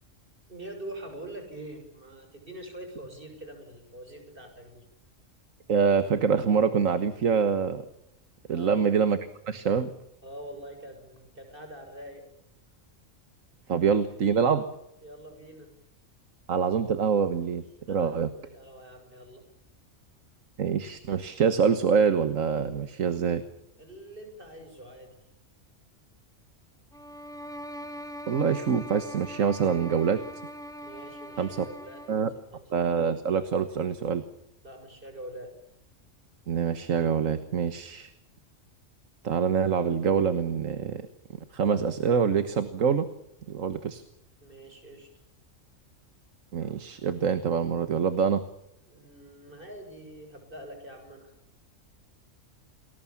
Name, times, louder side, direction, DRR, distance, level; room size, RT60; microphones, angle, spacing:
voice 1, 0.5-4.8 8.5-8.8 10.2-12.2 13.6-13.8 15.0-15.7 17.9-19.4 23.8-25.2 30.8-32.7 34.6-35.5 44.4-45.1 48.9-51.3, right 1 dB, 40° right, 5 dB, 7.0 m, -44 dB
voice 2, 5.7-7.8 8.5-9.2 9.5-9.9 13.7-14.7 16.5-18.3 20.6-23.4 28.3-30.2 31.4-31.7 32.1-32.3 32.7-34.2 36.5-38.1 39.2-41.1 41.5-43.1 43.5-44.0 46.5-48.4, right 6 dB, 90° right, 10 dB, 1.7 m, -25 dB
sound 1, 26.9-32.3, equal, 5° left, 1.3 m, -41 dB
29.0 x 21.0 x 7.3 m, 0.83 s
omnidirectional pair, 1.3 m